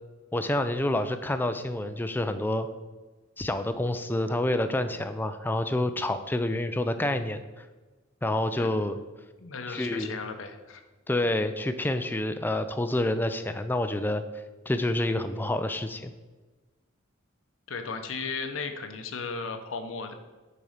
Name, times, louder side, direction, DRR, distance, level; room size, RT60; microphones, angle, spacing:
voice 1, 0.3-2.7 3.4-7.6 8.2-9.0 9.7-10.2 11.1-14.2 14.7-16.1, left 1 dB, 10° left, 9 dB, 0.3 m, -28 dB
voice 2, 9.4-10.8 17.7-20.1, left 4 dB, 70° left, 7 dB, 0.7 m, -35 dB
6.8 x 4.2 x 4.9 m, 1.2 s
head